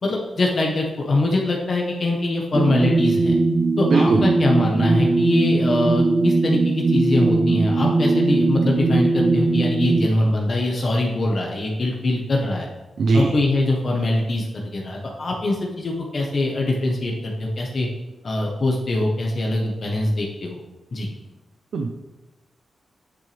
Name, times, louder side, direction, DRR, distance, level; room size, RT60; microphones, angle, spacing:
voice 1, 0.0-3.4 3.8-12.7 13.1-17.9 18.2-20.6 20.9-21.1, left 2 dB, 45° left, -1 dB, 1.4 m, -23 dB
sound 1, 2.5-10.1, right 3 dB, 30° right, 0.4 m, -19 dB
voice 2, 3.9-4.3 13.0-13.3 21.7-21.9, right 3 dB, 70° right, 3 dB, 0.8 m, -19 dB
9.7 x 9.0 x 3.5 m, 1.1 s
wide cardioid pair, 125°, 0 cm